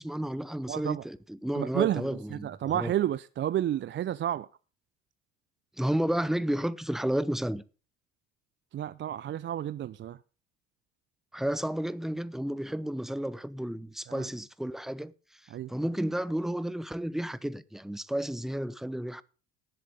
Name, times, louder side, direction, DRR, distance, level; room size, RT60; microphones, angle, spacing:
voice 1, 0.0-2.9 5.8-7.6 11.3-19.2, right 1 dB, ahead, 0.8 m, -32 dB
voice 2, 0.7-1.0 1.5-4.5 8.7-10.2 14.1-14.3 15.5-15.7, right 11 dB, 35° right, 0.5 m, -31 dB
18.5 x 7.8 x 3.8 m
hypercardioid pair, 60°, 33 cm